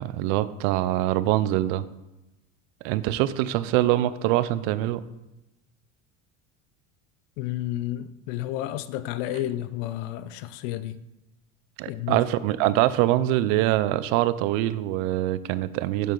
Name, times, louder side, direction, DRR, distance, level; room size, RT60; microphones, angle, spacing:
voice 1, 0.0-1.8 2.8-5.0 11.8-16.1, right 14 dB, 80° right, 16 dB, 0.6 m, -24 dB
voice 2, 7.4-11.0 11.9-12.2, left 13 dB, 75° left, 14 dB, 0.6 m, -31 dB
8.1 x 6.6 x 3.8 m, 0.98 s
supercardioid pair, 110°, 37 cm